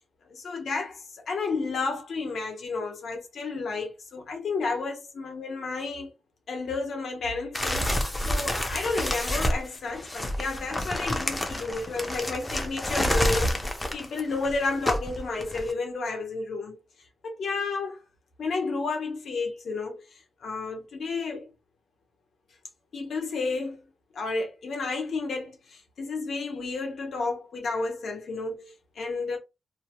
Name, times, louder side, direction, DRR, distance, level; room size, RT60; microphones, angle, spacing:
voice 1, 0.2-6.1 6.5-16.8 17.2-18.0 18.4-21.4 22.9-23.8 24.1-29.4, left 3 dB, 60° left, 0.8 m, -32 dB
sound 1, 7.5-15.7, left 1 dB, 15° left, 0.4 m, -29 dB
2.7 x 2.1 x 2.8 m
wide cardioid pair, 170°, 0 cm